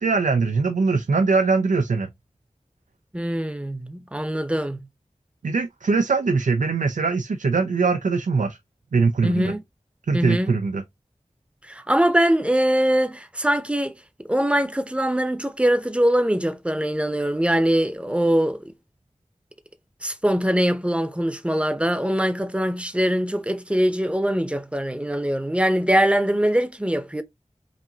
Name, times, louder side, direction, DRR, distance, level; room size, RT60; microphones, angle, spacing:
voice 1, 0.0-2.1 5.4-8.6 8.9-9.5 10.1-10.8, right 4 dB, 85° right, 0.4 m, -21 dB
voice 2, 3.1-4.8 9.2-9.6 10.1-10.6 11.7-18.6 20.0-27.2, equal, 10° right, 0.7 m, -22 dB
5.0 x 2.7 x 2.7 m
wide cardioid pair, 50°, 13 cm